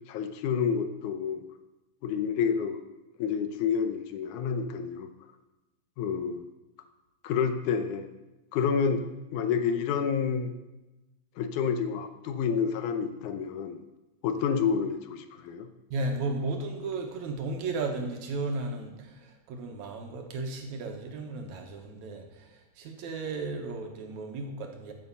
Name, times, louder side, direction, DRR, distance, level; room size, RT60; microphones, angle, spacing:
voice 1, 0.1-1.4 2.0-2.8 3.2-5.1 6.0-6.5 7.2-8.1 8.5-9.0 9.3-10.6 11.4-13.8 14.2-15.7, left 6 dB, 80° left, 8 dB, 2.2 m, -29 dB
voice 2, 15.9-24.9, right 3 dB, 70° right, 3 dB, 2.5 m, -34 dB
14.0 x 7.0 x 5.4 m, 1.0 s
omnidirectional pair, 3.6 m